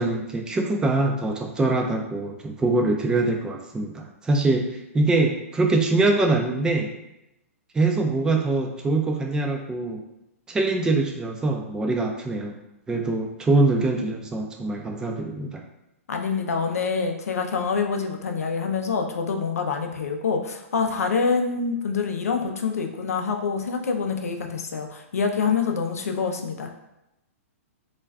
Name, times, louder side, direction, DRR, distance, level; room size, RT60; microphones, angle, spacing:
voice 1, 0.0-6.9 7.7-10.0 10.5-12.6 12.9-15.6, right 2 dB, 10° right, 2 dB, 0.3 m, -23 dB
voice 2, 16.1-26.7, left 5 dB, 85° left, 4 dB, 0.4 m, -26 dB
2.4 x 2.2 x 3.3 m, 0.90 s
hypercardioid pair, 130°, 8 cm